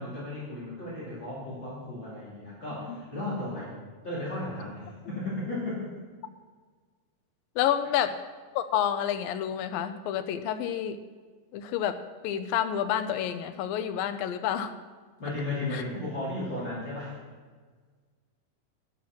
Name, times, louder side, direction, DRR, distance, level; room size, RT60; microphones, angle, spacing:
voice 1, 0.0-3.7 4.0-5.9 15.2-17.2, left 2 dB, 35° left, -7 dB, 3.7 m, -35 dB
voice 2, 7.6-8.1 8.6-11.0 11.5-12.0 12.2-14.7 15.7-15.8, left 10 dB, 80° left, 9 dB, 2.5 m, -29 dB
11.0 x 10.5 x 6.1 m, 1.5 s
omnidirectional pair, 4.1 m